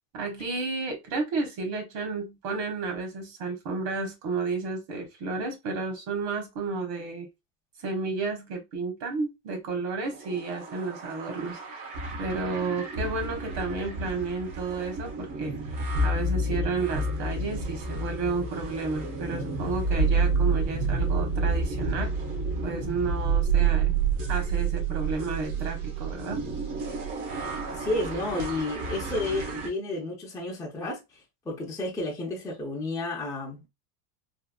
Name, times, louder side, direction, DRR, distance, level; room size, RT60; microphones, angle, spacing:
voice 1, 0.1-7.3 7.8-11.9 12.2-15.5 16.0-22.2 22.6-23.9 24.3-26.4, right 4 dB, 55° right, 1.3 m, -32 dB
sound 1, 10.1-29.7, right 4 dB, 75° right, 1.2 m, -29 dB
voice 2, 27.7-31.2 31.5-33.7, left 2 dB, 5° left, 0.4 m, -31 dB
3.5 x 2.3 x 2.2 m
cardioid pair, 155°, 46 cm